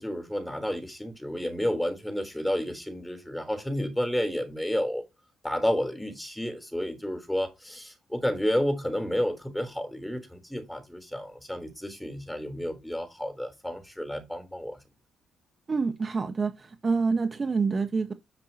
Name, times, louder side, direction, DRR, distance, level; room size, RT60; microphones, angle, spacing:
voice 1, 0.0-5.0 5.4-14.8, equal, 5° left, 3.8 m, -31 dB
voice 2, 15.7-18.1, right 4 dB, 35° right, 1.3 m, -27 dB
10.5 x 7.4 x 3.0 m
cardioid pair, 90°, 0 cm